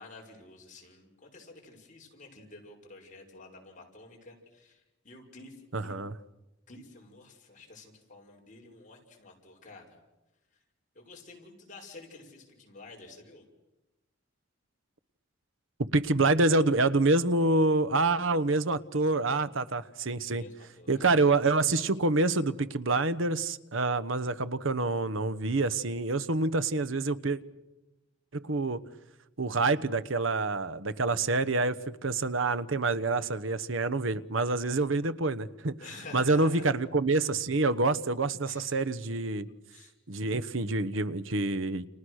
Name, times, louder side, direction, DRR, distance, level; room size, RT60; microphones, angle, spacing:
voice 1, 0.0-6.0 6.7-10.0 10.9-13.4 20.3-21.1 35.8-36.7 38.4-38.9 39.7-39.9, left 3 dB, 40° left, 6.0 m, -50 dB
voice 2, 5.7-6.1 15.9-20.4 20.9-27.4 28.3-28.8 29.4-35.7 36.1-39.5 40.1-41.9, right 3 dB, 80° right, 1.2 m, -27 dB
30.0 x 29.0 x 6.5 m
head